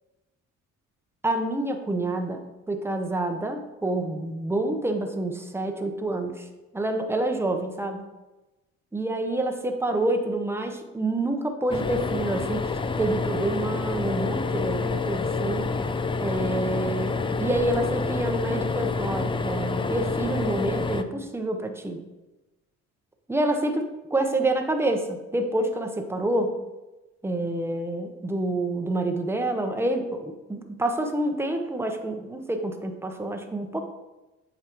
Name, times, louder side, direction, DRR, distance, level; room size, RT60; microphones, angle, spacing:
voice 1, 1.2-2.4 2.7-6.5 6.7-8.0 8.9-12.7 13.0-15.7 16.2-22.0 23.3-26.5 27.2-33.8, right 2 dB, 10° right, 4 dB, 0.8 m, -27 dB
sound 1, 11.7-21.0, left 4 dB, 20° left, 0.4 m, -28 dB
8.2 x 4.9 x 3.0 m, 1.1 s
cardioid pair, 90°, 30 cm